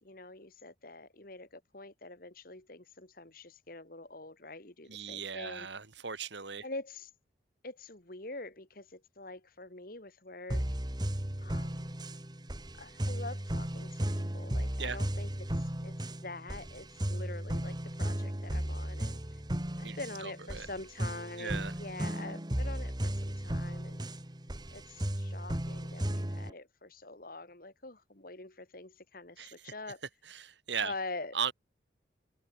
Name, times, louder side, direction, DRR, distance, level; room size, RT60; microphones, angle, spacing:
voice 1, 0.0-5.7 6.6-7.1 7.6-10.6 11.4-12.0 12.8-19.2 19.8-24.0 24.7-30.0 30.8-31.4, left 2 dB, 50° left, 2.6 m, -45 dB
voice 2, 4.9-6.6 14.8-15.0 19.8-20.7 21.4-21.7 29.4-29.7 30.2-30.9 31.3-31.5, right 6 dB, 70° right, 2.4 m, -38 dB
sound 1, 10.5-26.5, right 1 dB, 20° right, 1.7 m, -35 dB
open air
head